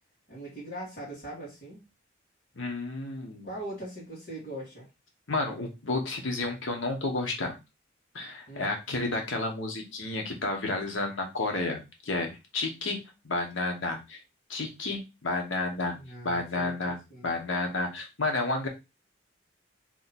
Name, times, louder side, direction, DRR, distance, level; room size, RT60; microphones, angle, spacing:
voice 1, 0.3-1.8 3.4-4.9 8.5-8.8 15.8-17.3, right 1 dB, 50° left, -9 dB, 1.7 m, -41 dB
voice 2, 2.5-3.5 5.3-7.6 8.1-14.2 14.5-16.0 16.2-18.7, left 2 dB, 85° left, 3 dB, 1.1 m, -31 dB
3.0 x 2.9 x 4.2 m, 0.25 s
head